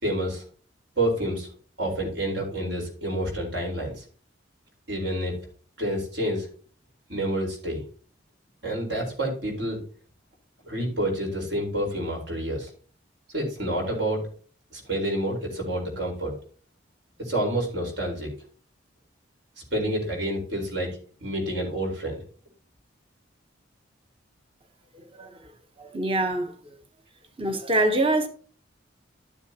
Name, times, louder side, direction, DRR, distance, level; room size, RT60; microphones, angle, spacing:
voice 1, 0.0-0.4 1.0-1.5 1.8-4.0 4.9-5.3 5.8-6.5 7.1-7.8 8.6-9.8 10.7-12.7 13.3-14.2 14.7-16.3 17.2-18.3 19.7-20.9 21.2-22.2, right 1 dB, 65° right, 4.4 m, -28 dB
voice 2, 24.9-25.5 25.8-26.5 27.4-28.3, right 1 dB, 25° right, 1.1 m, -25 dB
12.5 x 7.3 x 2.9 m
head